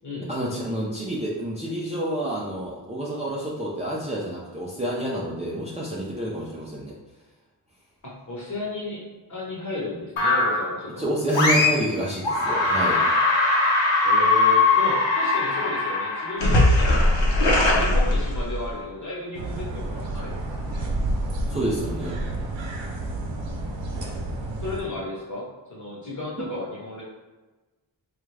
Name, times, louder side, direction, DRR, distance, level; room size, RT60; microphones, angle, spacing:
voice 1, 0.3-7.0 11.0-13.0 21.5-22.2, right 1 dB, 15° right, -7 dB, 0.5 m, -28 dB
voice 2, 8.0-11.1 14.0-17.0 17.4-20.8 24.6-27.0, left 2 dB, 40° left, -5 dB, 1.1 m, -34 dB
sound 1, 10.2-10.7 11.3-11.9 12.2-18.7, left 2 dB, 85° left, 0.8 m, -20 dB
sound 2, 19.3-24.8, right 1 dB, 85° right, 0.7 m, -30 dB
3.5 x 2.4 x 3.2 m, 1.2 s
wide cardioid pair, 115°, 44 cm